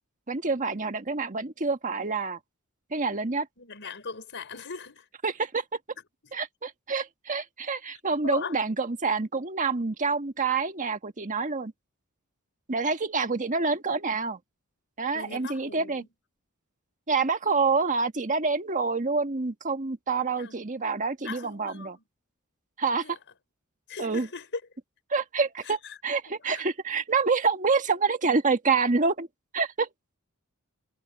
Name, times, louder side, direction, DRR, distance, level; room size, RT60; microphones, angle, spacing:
voice 1, 0.3-2.4 2.9-3.5 5.2-5.6 6.3-11.7 12.7-14.4 15.0-16.0 17.1-21.9 22.8-23.0 24.0-24.3 25.1-29.3 29.5-29.9, right 4 dB, 35° right, 1.5 m, -27 dB
voice 2, 3.6-5.1 8.2-8.6 15.1-16.1 20.3-20.6 21.2-22.0 23.0-23.2 23.9-24.6 25.6-26.0 26.4-26.6, left 4 dB, 55° left, 5.4 m, -39 dB
head